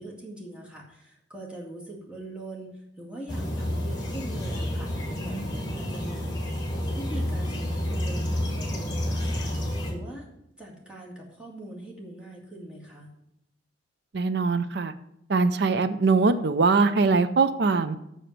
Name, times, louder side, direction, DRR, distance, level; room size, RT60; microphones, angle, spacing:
voice 1, 0.0-4.9 5.2-6.5 7.0-10.3 10.6-13.1, right 1 dB, 5° right, -4 dB, 2.1 m, -42 dB
sound 1, 3.3-9.9, left 1 dB, 20° left, 2.0 m, -29 dB
voice 2, 14.1-14.9 15.3-18.0, right 4 dB, 60° right, 13 dB, 0.5 m, -22 dB
6.8 x 6.4 x 7.4 m, 0.82 s
head